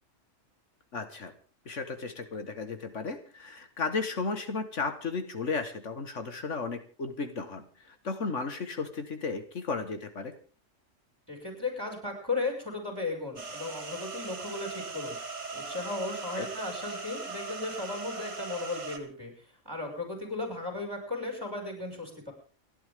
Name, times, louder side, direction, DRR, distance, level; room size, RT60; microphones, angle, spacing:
voice 1, 0.9-1.3 1.7-10.3 16.4-16.5, left 4 dB, 70° left, 8 dB, 1.8 m, -34 dB
voice 2, 11.3-15.2 15.5-22.3, left 3 dB, 20° right, 2 dB, 6.0 m, -36 dB
sound 1, 13.4-19.0, right 4 dB, 60° right, 2.4 m, -39 dB
29.5 x 11.0 x 3.7 m, 0.38 s
omnidirectional pair, 1.3 m